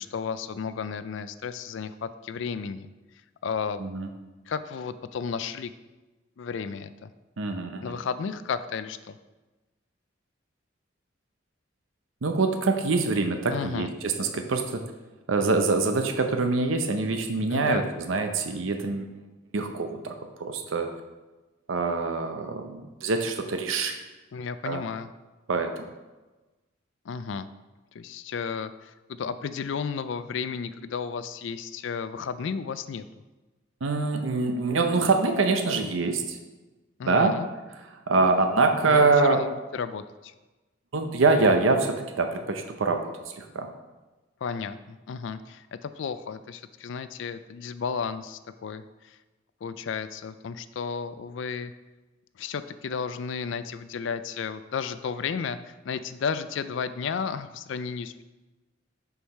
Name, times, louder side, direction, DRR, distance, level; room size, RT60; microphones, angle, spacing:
voice 1, 0.0-2.9 3.4-3.8 4.5-5.7 6.4-7.1 7.8-9.2 13.5-13.9 17.5-17.8 24.3-25.1 27.1-27.5 27.9-33.0 37.0-37.5 38.9-40.3 44.4-49.2 49.6-51.7 52.4-58.2, left 6 dB, 65° left, 13 dB, 0.4 m, -33 dB
voice 2, 7.4-8.0 12.2-14.8 15.3-19.0 19.5-20.9 21.7-24.0 24.6-24.8 25.5-25.9 33.8-36.4 37.0-37.4 38.1-39.4 40.9-43.7, right 3 dB, 75° right, 6 dB, 0.7 m, -25 dB
6.8 x 4.7 x 5.4 m, 1.2 s
head